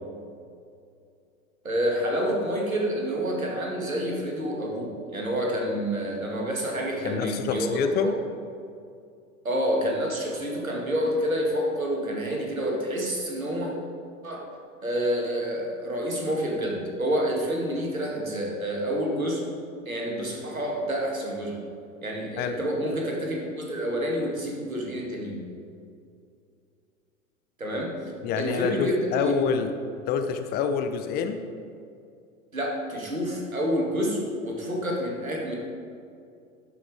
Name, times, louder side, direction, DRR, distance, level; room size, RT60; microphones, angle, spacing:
voice 1, 1.6-7.7 9.4-13.7 14.2-14.4 14.8-19.4 19.9-21.6 22.0-25.4 27.6-27.9 28.4-29.4 32.5-35.5, equal, 85° right, -1 dB, 2.0 m, -28 dB
voice 2, 7.0-8.1 22.4-22.6 28.2-29.7 30.1-31.4, left 6 dB, 25° left, 7 dB, 0.5 m, -27 dB
12.5 x 5.9 x 4.8 m, 2.4 s
figure-of-eight pair, 85°, 40 cm